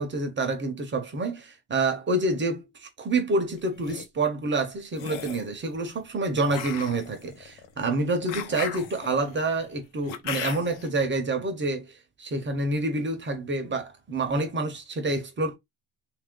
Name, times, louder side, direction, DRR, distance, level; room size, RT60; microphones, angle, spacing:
voice 1, 0.0-11.9 12.2-15.6, right 2 dB, 25° right, 0.5 m, -28 dB
sound 1, 3.6-4.0 4.9-5.5 6.5-10.9, left 9 dB, 65° left, 0.7 m, -37 dB
3.1 x 2.5 x 3.6 m
cardioid pair, 175°, 49 cm